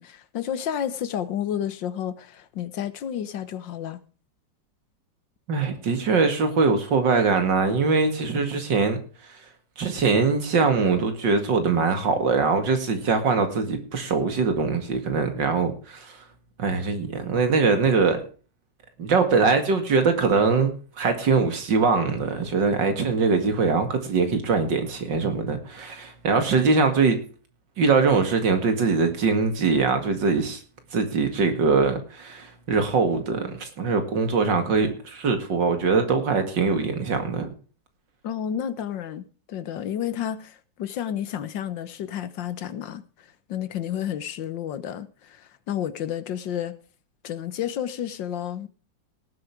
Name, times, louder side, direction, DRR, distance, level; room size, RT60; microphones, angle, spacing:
voice 1, 0.0-4.0 38.2-46.8 47.2-48.7, left 9 dB, 85° left, 1.7 m, -31 dB
voice 2, 5.5-9.0 9.8-16.2 16.6-18.2 19.0-27.2 27.8-30.6 30.9-37.5, right 4 dB, 75° right, 2.8 m, -22 dB
18.0 x 8.0 x 4.8 m
omnidirectional pair, 2.0 m